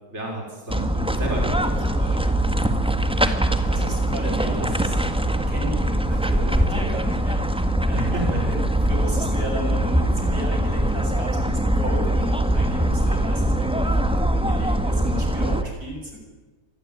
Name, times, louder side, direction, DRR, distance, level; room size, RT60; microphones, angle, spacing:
voice 1, 0.1-2.5 7.9-8.4, right 1 dB, 45° right, 0 dB, 5.3 m, -32 dB
sound 1, 0.7-15.6, right 1 dB, 5° right, 1.7 m, -22 dB
voice 2, 3.7-5.0 5.5-16.2, right 1 dB, 80° right, 2 dB, 7.5 m, -34 dB
26.0 x 20.5 x 9.4 m, 1.2 s
omnidirectional pair, 1.6 m